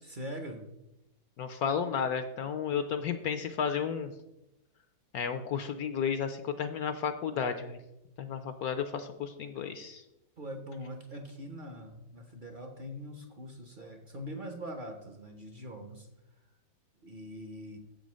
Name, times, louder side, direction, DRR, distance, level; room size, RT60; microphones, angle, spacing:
voice 1, 0.0-0.6 10.4-16.1 17.0-17.8, equal, 55° right, 5 dB, 0.5 m, -42 dB
voice 2, 1.4-4.1 5.1-7.8 8.2-10.0, left 7 dB, 70° left, 9 dB, 0.9 m, -32 dB
7.6 x 5.2 x 6.2 m, 0.94 s
omnidirectional pair, 2.0 m